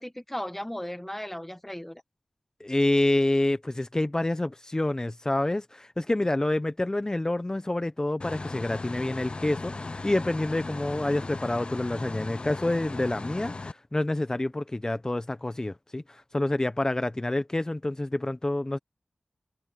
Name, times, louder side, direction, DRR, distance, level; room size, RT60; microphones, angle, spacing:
voice 1, 0.0-2.0, left 1 dB, 10° left, 1.2 m, -36 dB
voice 2, 2.6-18.8, left 1 dB, 30° left, 0.9 m, -28 dB
sound 1, 8.2-13.7, left 3 dB, 50° left, 0.6 m, -37 dB
cardioid pair, 45°, 2 cm